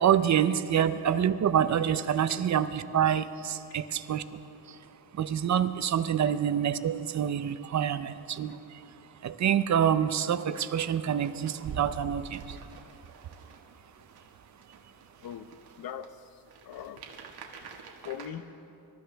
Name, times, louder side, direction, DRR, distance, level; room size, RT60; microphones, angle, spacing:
voice 1, 0.0-4.4 4.7-4.8 5.1-8.8 9.2-12.6, right 9 dB, 45° right, 12 dB, 0.6 m, -27 dB
sound 1, 10.4-18.3, right 5 dB, 65° right, 1.8 m, -47 dB
voice 2, 15.8-17.1 18.0-18.5, left 9 dB, 60° left, 11 dB, 0.8 m, -41 dB
26.0 x 13.5 x 3.5 m, 2.7 s
cardioid pair, 140°, 41 cm